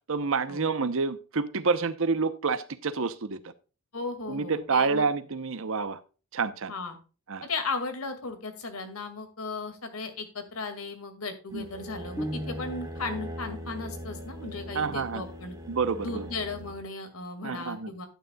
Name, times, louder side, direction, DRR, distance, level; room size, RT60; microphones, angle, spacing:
voice 1, 0.1-3.5 4.3-6.0 6.3-6.7 7.3-7.5 11.5-11.7 14.7-15.2 15.7-16.3 17.4-17.9, right 4 dB, 65° right, 0.8 m, -28 dB
voice 2, 3.9-5.1 6.7-7.0 7.4-15.5 16.0-18.1, left 3 dB, 85° left, 2.2 m, -36 dB
sound 1, 11.5-16.8, equal, 20° right, 1.7 m, -41 dB
sound 2, 12.2-13.2, equal, ahead, 0.7 m, -36 dB
11.5 x 9.5 x 2.3 m
head